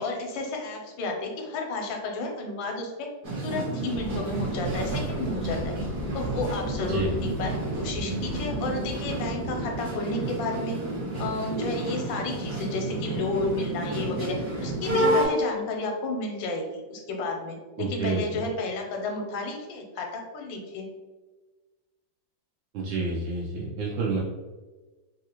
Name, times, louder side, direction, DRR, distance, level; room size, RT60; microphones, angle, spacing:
voice 1, 0.0-3.1 3.4-5.7 6.1-10.8 11.2-20.8, left 3 dB, 80° left, 2 dB, 1.4 m, -32 dB
sound 1, 3.2-15.3, right 1 dB, 50° right, 1.3 m, -30 dB
sound 2, 3.9-9.8, left 1 dB, 70° right, 1.0 m, -37 dB
voice 2, 17.8-18.4 22.7-24.2, right 3 dB, 85° right, -6 dB, 1.4 m, -29 dB
3.6 x 2.4 x 2.8 m, 1.3 s
omnidirectional pair, 2.1 m